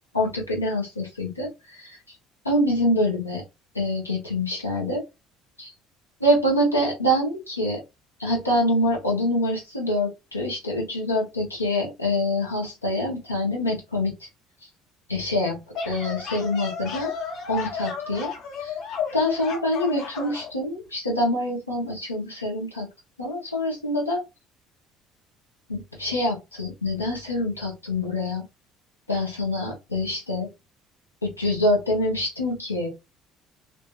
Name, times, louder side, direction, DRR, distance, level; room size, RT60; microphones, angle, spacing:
voice 1, 0.1-2.0 2.4-3.4 3.7-5.0 5.6-5.7 6.2-7.8 8.2-14.1 15.1-15.6 15.8-17.1 17.5-18.3 18.6-18.7 19.1-22.9 23.2-24.2 25.7-28.4 29.1-30.5 31.2-32.9, left 1 dB, 90° left, -3 dB, 0.8 m, -25 dB
sound 1, 15.7-20.5, left 6 dB, 55° left, 0.8 m, -33 dB
2.6 x 2.4 x 2.3 m, 0.23 s
figure-of-eight pair, 55°, 0 cm